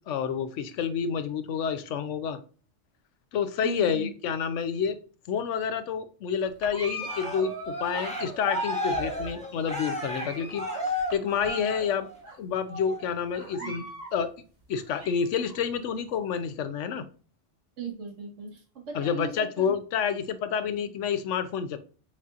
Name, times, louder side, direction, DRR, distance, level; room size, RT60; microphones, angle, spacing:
voice 1, 0.0-2.4 3.3-5.0 5.3-10.6 11.0-12.1 12.4-13.8 14.1-14.3 14.7-17.0 18.9-21.8, left 7 dB, 85° left, 11 dB, 0.9 m, -29 dB
voice 2, 3.6-4.1 13.6-13.8 17.8-19.7, right 6 dB, 90° right, 1 dB, 1.5 m, -38 dB
sound 1, 6.5-7.3 7.6-7.9 8.2-11.8, right 1 dB, 30° right, 1.6 m, -50 dB
sound 2, 6.7-8.1 8.8-9.5 10.0-10.7 11.0-11.1 11.7-11.8 12.2-12.3 13.3-14.1 14.6-15.6, equal, 50° right, 2.5 m, -42 dB
Cheering, 7.0-12.2 12.7-13.1, equal, 5° left, 1.1 m, -33 dB
6.2 x 2.8 x 2.4 m, 0.39 s
omnidirectional pair, 1.2 m